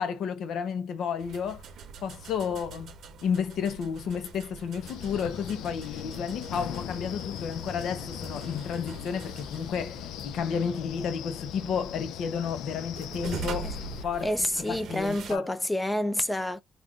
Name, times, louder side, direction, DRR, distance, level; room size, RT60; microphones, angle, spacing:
voice 1, 0.0-1.6 2.0-2.9 3.2-13.7 14.0-14.3 14.7-15.4, left 7 dB, 75° left, 0.7 m, -32 dB
sound 1, 1.2-15.4, right 5 dB, 70° right, 0.7 m, -43 dB
Wind, 4.8-14.0, left 10 dB, 90° left, 0.3 m, -39 dB
voice 2, 14.2-16.6, left 1 dB, 15° left, 0.5 m, -28 dB
3.5 x 2.4 x 2.4 m
cardioid pair, 90°, 0 cm